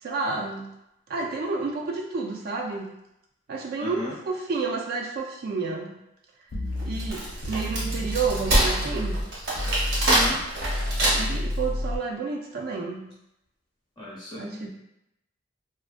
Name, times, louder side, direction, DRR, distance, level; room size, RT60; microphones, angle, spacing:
voice 1, 0.0-0.6 1.1-2.9 3.5-6.0 6.8-9.2 11.1-13.0 14.3-14.7, right 4 dB, 55° right, 0 dB, 0.3 m, -30 dB
voice 2, 3.8-4.1 10.0-10.4 14.0-14.7, left 1 dB, 25° left, -7 dB, 0.8 m, -35 dB
sound 1, 6.5-9.2 9.5-12.0, left 1 dB, 65° left, 0.4 m, -30 dB
Wood, 6.8-11.5, right 1 dB, 85° right, 1.1 m, -25 dB
2.4 x 2.2 x 2.4 m, 0.84 s
head